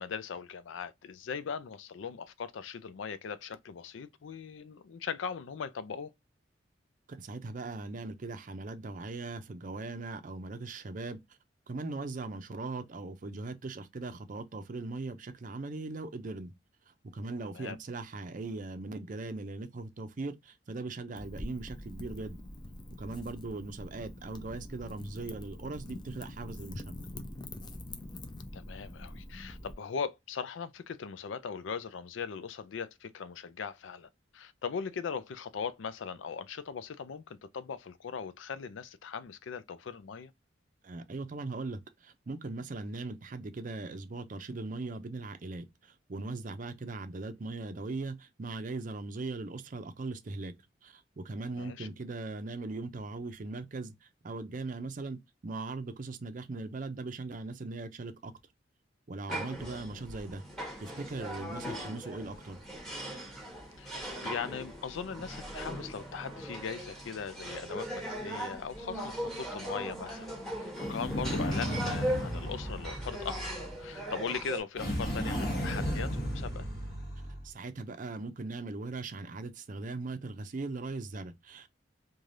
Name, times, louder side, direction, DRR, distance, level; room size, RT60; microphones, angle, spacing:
voice 1, 0.0-6.1 17.5-17.8 28.5-40.3 51.5-51.9 59.9-60.0 63.8-76.7, left 6 dB, 85° left, 0.4 m, -39 dB
voice 2, 7.1-11.2 11.7-16.5 16.9-22.4 23.0-27.0 40.8-50.5 50.8-58.3 59.1-60.4 60.8-62.6 77.4-81.7, right 3 dB, 45° right, 0.5 m, -39 dB
Wind / Fire, 21.2-29.7, left 1 dB, 25° left, 0.4 m, -44 dB
sound 1, 59.3-74.6, equal, ahead, 1.0 m, -39 dB
sound 2, 70.8-73.8 74.7-77.5, equal, 50° left, 1.1 m, -34 dB
3.2 x 2.2 x 2.6 m
head